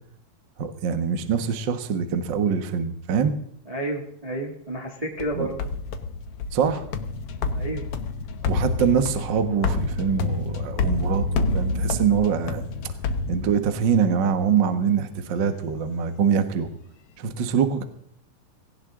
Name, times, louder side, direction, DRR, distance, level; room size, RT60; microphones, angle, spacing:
voice 1, 0.6-3.4 5.3-5.5 6.5-6.8 8.4-12.6 13.3-16.7 17.2-17.8, right 7 dB, 55° right, 8 dB, 1.3 m, -24 dB
voice 2, 3.6-5.5 7.5-7.9, right 1 dB, 15° right, -1 dB, 1.4 m, -31 dB
sound 1, 5.2-14.0, left 3 dB, 70° left, 1.4 m, -28 dB
18.5 x 17.5 x 3.8 m, 0.67 s
omnidirectional pair, 4.1 m